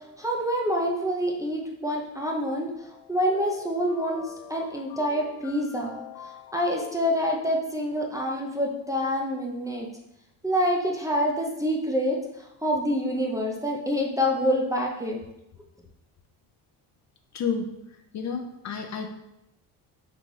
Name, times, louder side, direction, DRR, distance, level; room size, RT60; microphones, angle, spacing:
voice 1, 0.0-9.9 10.4-15.2, equal, 10° right, -2 dB, 0.5 m, -27 dB
sound 1, 2.8-7.8, left 8 dB, 80° left, 1.1 m, -45 dB
voice 2, 17.3-17.8 18.1-19.1, left 5 dB, 45° left, 5 dB, 0.5 m, -30 dB
3.9 x 3.3 x 3.2 m, 0.85 s
cardioid pair, 105°, 41 cm